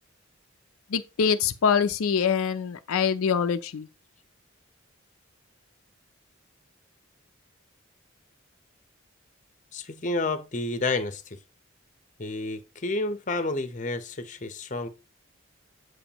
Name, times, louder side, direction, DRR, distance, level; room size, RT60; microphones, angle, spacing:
voice 1, 0.9-3.9, left 6 dB, 80° left, 0.4 m, -24 dB
voice 2, 9.7-11.4 12.2-14.9, left 2 dB, 35° left, 0.7 m, -30 dB
7.8 x 7.1 x 2.9 m
head